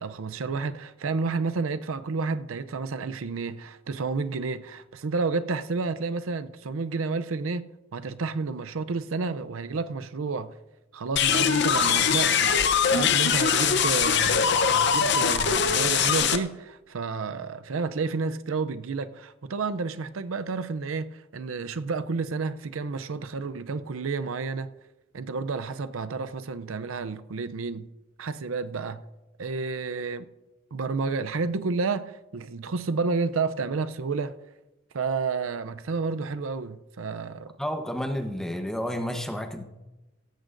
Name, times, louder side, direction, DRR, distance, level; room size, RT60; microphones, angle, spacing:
voice 1, 0.0-10.6 10.9-12.5 12.9-24.7 25.1-27.9 28.2-29.0 29.4-30.3 30.7-34.4 34.9-37.5, right 4 dB, 85° right, 0.5 m, -30 dB
sound 1, 11.2-16.4, left 7 dB, 55° left, 0.8 m, -22 dB
voice 2, 37.6-39.6, equal, 5° left, 0.9 m, -30 dB
16.5 x 14.5 x 2.6 m
head